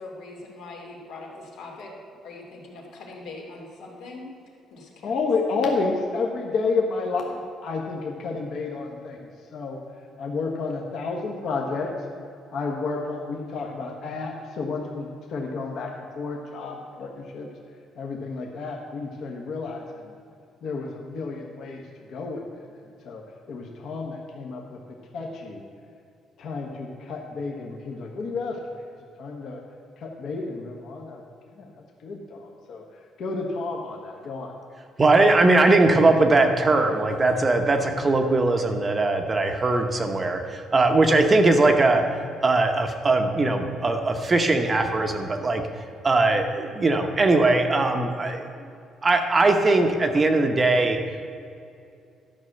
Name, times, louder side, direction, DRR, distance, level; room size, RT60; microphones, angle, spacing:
voice 1, 0.0-2.0 2.2-4.3 4.7-5.1, left 3 dB, 75° left, -1 dB, 2.7 m, -41 dB
voice 2, 5.0-9.8 10.2-11.9 12.5-17.5 17.9-20.1 20.6-21.8 22.1-23.2 23.5-24.8 25.1-25.6 26.4-28.6 29.2-29.6 30.0-31.2 31.5-31.7 32.0-32.8 33.2-34.5, left 4 dB, 55° left, 0 dB, 1.3 m, -31 dB
voice 3, 35.0-42.0 42.4-45.6 46.0-48.4 49.0-51.0, right 2 dB, 20° right, 5 dB, 0.8 m, -20 dB
13.0 x 6.1 x 7.8 m, 2.5 s
cardioid pair, 170°, 0 cm